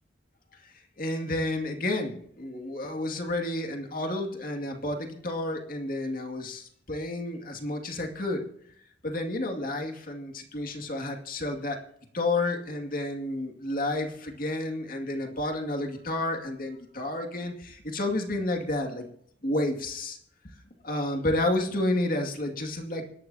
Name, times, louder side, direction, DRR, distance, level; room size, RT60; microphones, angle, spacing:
voice 1, 1.0-8.4 9.0-11.8 12.1-19.0 19.4-20.2 20.8-23.0, left 2 dB, 50° left, 2 dB, 2.3 m, -30 dB
25.5 x 12.5 x 2.8 m, 0.65 s
head